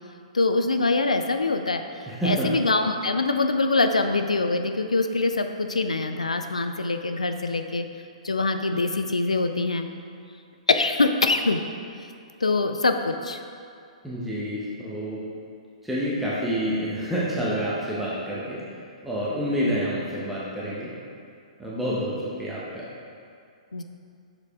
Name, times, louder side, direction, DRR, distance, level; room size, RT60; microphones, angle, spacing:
voice 1, 0.3-1.8 2.2-7.9 8.2-9.9 10.7-11.6 12.4-13.4 23.7-23.8, left 3 dB, 85° left, 7 dB, 0.3 m, -24 dB
voice 2, 2.1-2.5 14.0-15.2 15.8-18.6 19.0-20.9 21.6-22.8, equal, 5° right, -8 dB, 1.0 m, -28 dB
6.5 x 4.8 x 3.6 m, 2.4 s
figure-of-eight pair, 115°, 4 cm